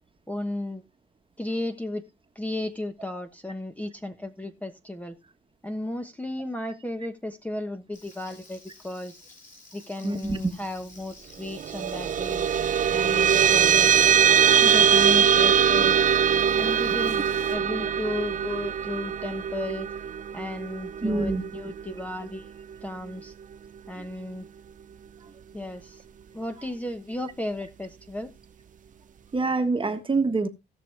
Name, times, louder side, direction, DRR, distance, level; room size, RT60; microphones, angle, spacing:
voice 1, 0.3-0.8 1.4-2.0 2.3-5.2 5.6-9.2 9.7-12.5 12.9-13.9 14.6-16.0 16.5-19.9 20.3-22.5 22.8-23.3 23.9-24.5 25.5-26.0 26.3-28.3, left 1 dB, 5° left, 1.1 m, -34 dB
Frying (food), 7.9-17.5, left 2 dB, 40° left, 7.9 m, -51 dB
voice 2, 10.0-10.4 13.0-13.1 21.0-21.4 24.0-24.1 29.3-30.5, right 3 dB, 25° right, 1.5 m, -26 dB
sound 1, 11.5-22.3, right 8 dB, 40° right, 0.5 m, -22 dB
17.0 x 6.2 x 3.4 m
cardioid pair, 90°, 20 cm